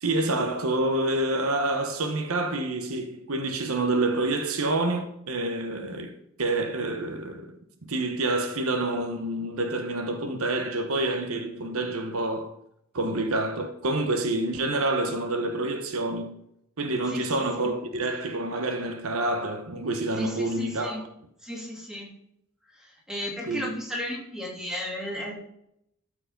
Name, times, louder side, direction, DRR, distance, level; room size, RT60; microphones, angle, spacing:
voice 1, 0.0-7.6 7.8-12.5 12.9-16.3 16.8-21.1 23.5-23.7, right 2 dB, 70° right, 0.9 m, -28 dB
voice 2, 20.1-21.0 21.4-22.1 22.7-25.3, equal, 5° right, 2.2 m, -34 dB
13.0 x 4.6 x 5.2 m
head